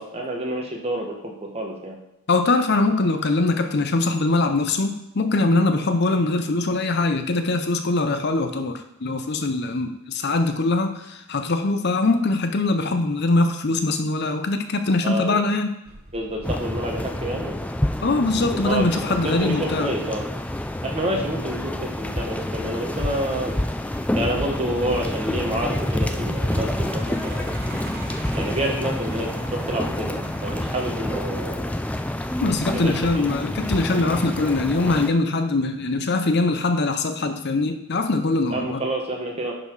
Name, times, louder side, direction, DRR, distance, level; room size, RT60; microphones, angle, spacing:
voice 1, 0.0-2.0 15.0-15.4 16.1-17.5 18.6-20.2 20.8-23.5 24.1-27.6 28.3-31.7 32.7-33.3 38.5-39.5, right 1 dB, 30° right, 0 dB, 1.5 m, -28 dB
voice 2, 2.3-15.7 18.0-19.9 32.4-38.8, left 2 dB, 50° left, 7 dB, 0.7 m, -22 dB
Truck, 15.9-33.6, right 2 dB, 50° right, 1.4 m, -43 dB
sound 1, 16.4-35.1, left 1 dB, 5° left, 0.3 m, -28 dB
11.0 x 4.2 x 4.8 m, 0.87 s
head